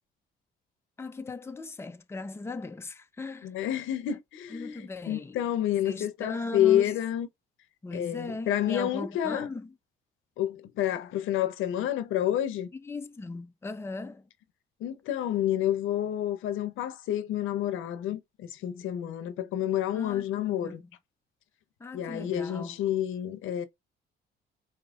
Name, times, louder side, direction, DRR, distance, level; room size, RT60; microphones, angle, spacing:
voice 1, 1.0-3.5 4.1-4.2 4.5-5.4 5.8-7.0 7.8-9.7 12.7-14.3 19.9-20.9 21.8-22.8, left 3 dB, 10° left, 0.5 m, -38 dB
voice 2, 3.4-7.3 7.9-9.5 10.4-12.7 14.8-20.8 21.9-23.6, left 11 dB, 85° left, 0.7 m, -29 dB
5.1 x 2.7 x 2.4 m
cardioid pair, 90°, 20 cm